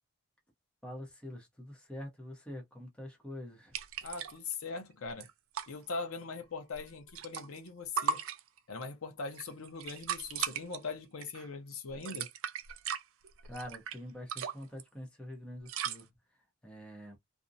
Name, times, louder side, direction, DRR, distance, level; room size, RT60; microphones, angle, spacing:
voice 1, 0.8-3.7 13.4-16.4 16.6-17.2, left 1 dB, 5° left, 0.8 m, -45 dB
sound 1, 3.7-4.5 4.8-4.9 5.1-5.7 6.7-7.7 8.0-8.8 9.3-10.8 11.2-11.5 11.9-14.0 14.3-14.8 15.7-16.0, right 7 dB, 65° right, 0.4 m, -37 dB
voice 2, 4.0-5.3 5.7-8.2 8.7-12.3, left 4 dB, 70° left, 0.7 m, -41 dB
2.5 x 2.1 x 2.6 m
head